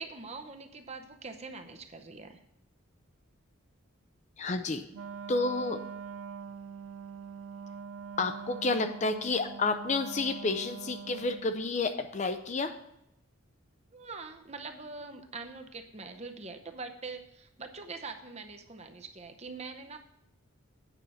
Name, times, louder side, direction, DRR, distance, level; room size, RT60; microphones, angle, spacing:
voice 1, 0.0-2.4 13.9-20.0, right 4 dB, 30° right, 7 dB, 0.7 m, -43 dB
voice 2, 4.4-4.9 5.3-5.8 8.2-12.8, left 3 dB, 30° left, 9 dB, 0.5 m, -30 dB
Wind instrument woodwind instrument, 4.9-11.6, right 6 dB, 80° right, 0.4 m, -43 dB
9.0 x 5.6 x 6.3 m, 0.80 s
head